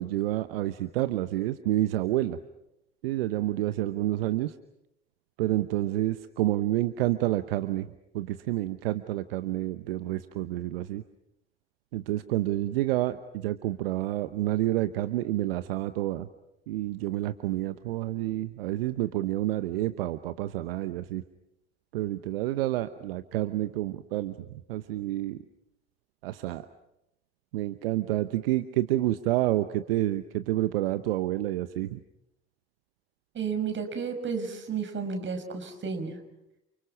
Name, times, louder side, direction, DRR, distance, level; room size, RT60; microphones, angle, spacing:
voice 1, 0.0-2.4 3.0-4.5 5.4-7.9 8.1-11.0 11.9-16.3 16.7-21.2 21.9-25.4 26.2-26.7 27.5-32.0, right 15 dB, 70° right, 13 dB, 1.0 m, -29 dB
voice 2, 33.3-36.2, right 5 dB, 40° right, 6 dB, 6.0 m, -32 dB
30.0 x 28.0 x 6.0 m, 0.84 s
figure-of-eight pair, 55°, 30 cm